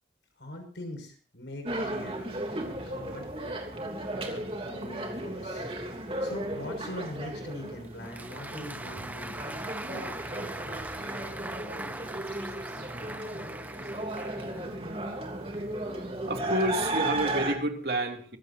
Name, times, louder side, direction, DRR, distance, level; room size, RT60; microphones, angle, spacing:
voice 1, 0.4-3.6 4.2-9.4 9.8-10.2, left 1 dB, 80° left, 4 dB, 6.2 m, -43 dB
sound 1, 1.7-17.5, right 1 dB, 30° right, 3.1 m, -35 dB
Applause, 7.8-15.0, right 2 dB, 10° right, 1.0 m, -41 dB
voice 2, 16.3-18.4, right 1 dB, 60° right, 3 dB, 2.8 m, -29 dB
24.5 x 15.5 x 2.8 m, 0.38 s
head